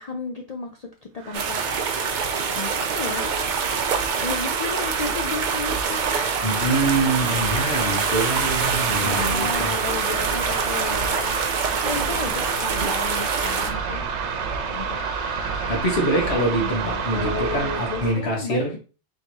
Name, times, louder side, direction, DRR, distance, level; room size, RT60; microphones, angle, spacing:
voice 1, 0.0-3.4 4.2-6.5 7.8-8.5 9.0-11.6 11.8-14.1 14.7-15.0 16.6-18.8, left 4 dB, 45° left, 2 dB, 0.5 m, -34 dB
sound 1, 1.2-18.2, right 5 dB, 80° right, 1.0 m, -30 dB
sound 2, 1.3-13.7, right 6 dB, 50° right, 0.6 m, -25 dB
voice 2, 6.4-9.8 15.7-18.7, right 1 dB, 70° left, -1 dB, 1.6 m, -25 dB
sound 3, 7.5-9.0 10.0-11.5 12.5-14.0 15.0-16.5, left 4 dB, 90° left, 1.1 m, -39 dB
3.6 x 2.7 x 4.5 m, 0.34 s
omnidirectional pair, 1.2 m